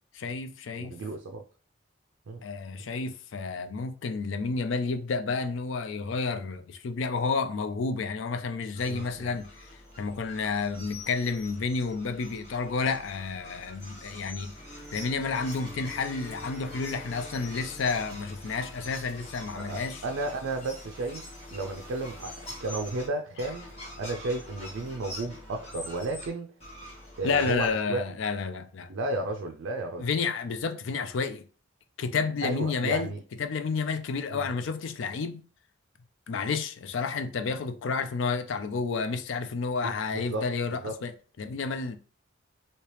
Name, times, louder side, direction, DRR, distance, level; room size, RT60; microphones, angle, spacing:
voice 1, 0.2-1.0 2.4-9.6 10.0-14.5 14.9-20.0 27.2-28.9 30.0-31.5 32.0-35.5 36.3-41.1 41.4-42.0, left 4 dB, 70° left, 0.4 m, -30 dB
voice 2, 0.8-1.4 2.3-2.4 8.9-9.4 19.5-21.3 21.5-23.7 24.0-26.5 27.2-28.2 28.9-30.1 32.4-33.2 34.3-34.5 39.8-40.4 40.8-41.0, right 2 dB, 75° right, 0.4 m, -33 dB
sound 1, 8.7-23.1 23.4-26.3 26.6-27.7, left 1 dB, 30° left, 1.3 m, -45 dB
Bowed string instrument, 14.5-19.5, equal, 5° right, 1.4 m, -49 dB
3.2 x 2.8 x 2.9 m
head